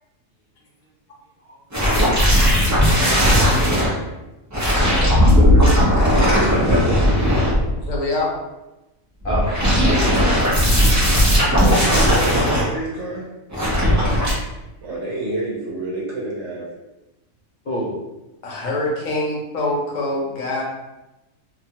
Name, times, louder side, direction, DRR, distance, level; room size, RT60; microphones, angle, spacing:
sound 1, 1.7-3.9 4.5-7.9 9.2-12.6 13.5-14.3, equal, 25° right, 0.4 m, -16 dB
voice 1, 6.3-7.3 11.3-13.3 14.8-16.7, right 2 dB, 60° right, -4 dB, 1.0 m, -28 dB
voice 2, 7.8-8.3 18.4-20.6, left 2 dB, 75° left, -3 dB, 1.1 m, -24 dB
voice 3, 9.2-10.3 12.1-12.4 13.8-14.0 17.6-17.9, right 1 dB, 55° left, -6 dB, 0.6 m, -28 dB
2.8 x 2.3 x 2.8 m, 1.0 s
omnidirectional pair, 1.4 m